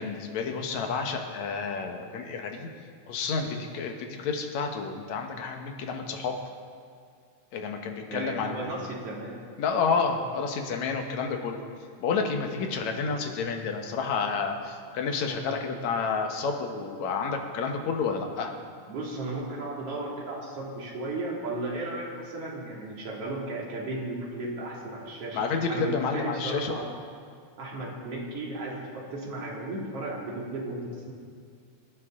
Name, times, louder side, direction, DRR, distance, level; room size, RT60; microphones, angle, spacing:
voice 1, 0.0-2.7 3.1-6.4 7.5-8.7 9.6-11.6 12.0-18.5 25.3-26.8, left 5 dB, 70° left, 4 dB, 2.5 m, -30 dB
voice 2, 8.1-9.4 18.9-26.9 27.6-31.1, right 2 dB, 50° right, -3 dB, 3.5 m, -35 dB
24.0 x 11.0 x 3.8 m, 2.2 s
omnidirectional pair, 3.5 m